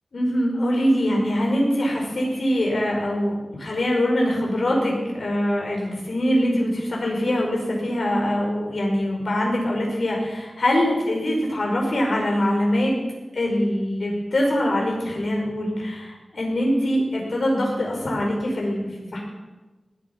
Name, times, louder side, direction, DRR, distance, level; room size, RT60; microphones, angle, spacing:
voice 1, 0.1-13.0 13.3-19.2, equal, 65° left, -1 dB, 5.2 m, -23 dB
19.0 x 9.4 x 5.9 m, 1.2 s
wide cardioid pair, 90°, 0 cm